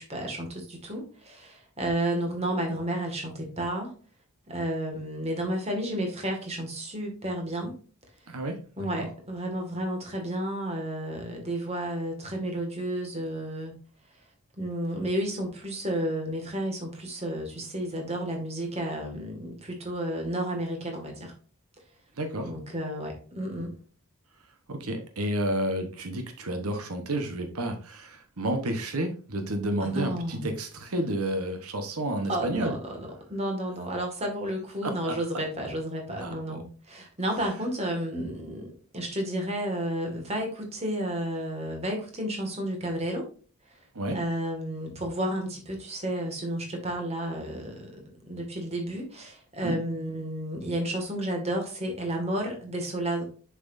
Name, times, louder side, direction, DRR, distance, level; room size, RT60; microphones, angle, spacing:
voice 1, 0.0-3.9 4.5-7.7 8.8-13.7 14.6-21.3 22.4-23.7 29.8-30.5 32.3-43.3 44.1-53.2, right 1 dB, 30° right, 2 dB, 2.0 m, -32 dB
voice 2, 8.3-9.1 22.2-22.5 24.7-32.7 34.8-35.1 36.2-36.6 43.9-44.2 49.6-49.8, right 1 dB, 90° right, 6 dB, 1.2 m, -31 dB
7.1 x 6.1 x 2.6 m, 0.40 s
head